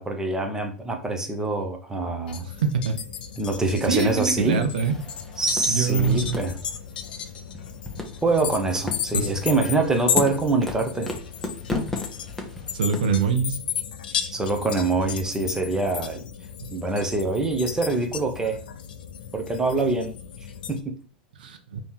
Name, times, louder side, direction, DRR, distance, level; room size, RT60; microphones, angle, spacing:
voice 1, 0.0-2.4 3.4-4.7 5.4-6.5 8.2-11.1 14.3-16.2 16.7-18.6 19.3-20.1 20.7-21.0, right 3 dB, 10° right, 1.0 m, -25 dB
sound 1, 2.3-20.8, left 8 dB, 70° left, 0.6 m, -34 dB
voice 2, 2.4-3.0 3.9-5.0 5.7-6.4 9.1-9.3 12.7-13.6 14.1-14.3 16.6-16.7 21.4-21.8, right 5 dB, 70° right, 0.8 m, -24 dB
sound 2, 4.8-13.3, left 2 dB, 5° left, 1.2 m, -34 dB
3.5 x 3.1 x 4.5 m
hypercardioid pair, 95°, 5 cm